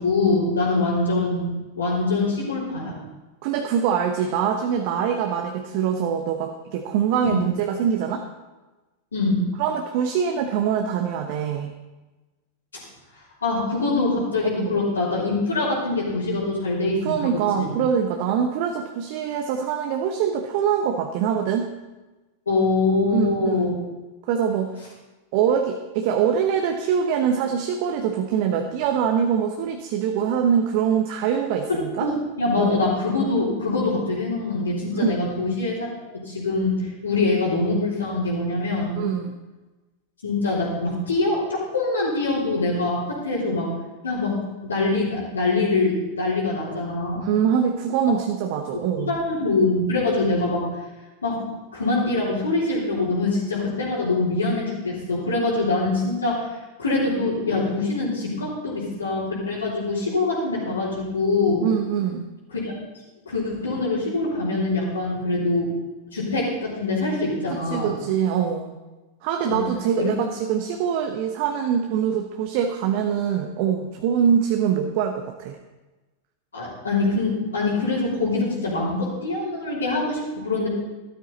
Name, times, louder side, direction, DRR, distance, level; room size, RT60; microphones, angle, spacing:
voice 1, 0.0-1.5 1.8-3.0 7.2-7.4 9.1-9.4 12.7-12.8 13.4-17.7 22.5-23.7 31.7-39.1 40.2-43.7 44.0-47.3 49.0-50.8 51.2-56.5 56.8-61.7 62.5-62.8 63.3-65.7 66.1-68.0 69.5-69.6 70.0-70.1 76.5-80.7, left 3 dB, 70° left, -9 dB, 3.4 m, -24 dB
voice 2, 3.4-8.2 9.6-11.7 14.6-14.8 17.0-21.7 23.1-23.7 24.3-24.9 25.3-32.1 32.6-32.8 34.9-35.1 38.9-39.3 47.1-49.2 61.6-62.2 67.5-68.8 69.2-75.6, right 8 dB, 45° right, 5 dB, 0.9 m, -24 dB
13.0 x 12.5 x 4.0 m, 1.2 s
figure-of-eight pair, 90°, 0 cm